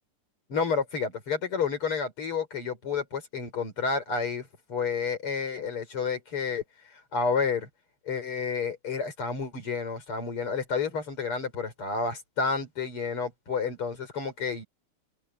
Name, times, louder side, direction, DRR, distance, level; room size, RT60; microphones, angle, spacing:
voice 1, 0.5-6.6 6.9-7.7 8.1-14.6, left 5 dB, 80° left, 5.5 m, -30 dB
omnidirectional pair, 2.4 m